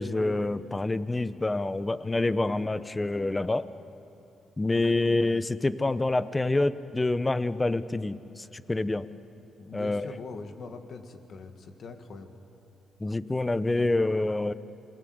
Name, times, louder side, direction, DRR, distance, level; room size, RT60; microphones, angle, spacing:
voice 1, 0.0-3.7 4.6-9.1 9.7-10.1 13.0-14.5, left 2 dB, 20° left, 14 dB, 0.9 m, -27 dB
voice 2, 9.6-12.3, left 4 dB, 60° left, 6 dB, 2.1 m, -42 dB
27.5 x 22.0 x 8.0 m, 2.9 s
cardioid pair, 70°, 0 cm